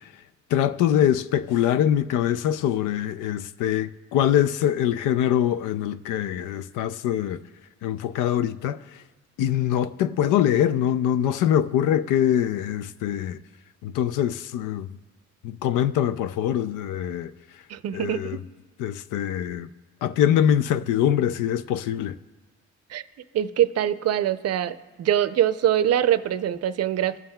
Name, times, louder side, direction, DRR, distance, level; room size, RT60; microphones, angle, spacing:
voice 1, 0.5-7.4 7.8-8.8 9.4-13.4 13.8-14.9 15.4-17.3 17.9-18.4 18.8-19.7 20.0-22.2, left 10 dB, 90° left, 0.5 m, -23 dB
voice 2, 17.7-18.4 22.9-23.0 23.3-27.2, right 11 dB, 55° right, 0.5 m, -23 dB
21.0 x 7.3 x 2.2 m
cardioid pair, 90°, 30 cm